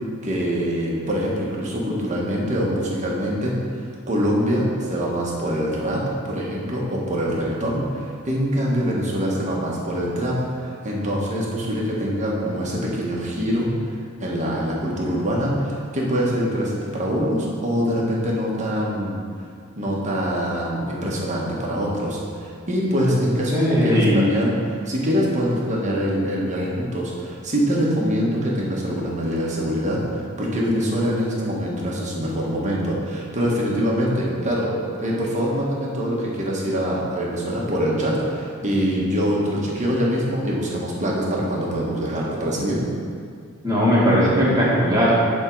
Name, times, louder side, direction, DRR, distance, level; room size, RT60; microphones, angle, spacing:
voice 1, 0.2-3.5 4.1-13.7 14.2-19.2 19.8-34.7 35.0-42.8, equal, 35° right, -4 dB, 1.4 m, -24 dB
voice 2, 23.5-24.3 43.6-45.1, equal, 20° right, -8 dB, 2.0 m, -18 dB
10.5 x 3.7 x 4.6 m, 2.2 s
head